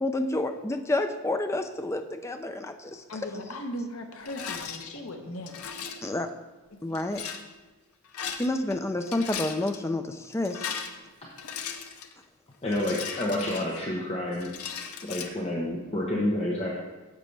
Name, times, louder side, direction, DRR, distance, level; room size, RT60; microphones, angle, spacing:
voice 1, 0.0-3.0 6.0-6.3 6.8-7.2 8.3-10.7, left 2 dB, 15° left, 7 dB, 0.4 m, -29 dB
voice 2, 3.1-5.6, left 1 dB, 70° left, 4 dB, 1.0 m, -37 dB
Rattle, 4.2-4.8 5.5-6.1 6.9-7.4 8.0-8.8 9.0-9.8 10.3-12.1 12.7-14.0 14.4-15.3, left 7 dB, 90° left, 0.7 m, -37 dB
voice 3, 12.6-14.5 15.0-16.7, left 1 dB, 30° left, -3 dB, 0.9 m, -29 dB
10.5 x 7.4 x 3.3 m, 1.2 s
head